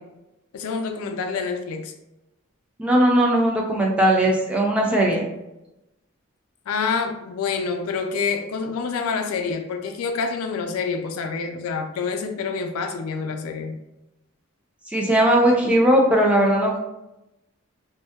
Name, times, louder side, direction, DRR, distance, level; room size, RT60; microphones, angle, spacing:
voice 1, 0.5-1.9 6.7-13.8, left 5 dB, 85° left, 6 dB, 0.3 m, -27 dB
voice 2, 2.8-5.2 14.9-16.8, right 1 dB, 5° right, -2 dB, 0.3 m, -18 dB
2.6 x 2.1 x 2.3 m, 0.93 s
head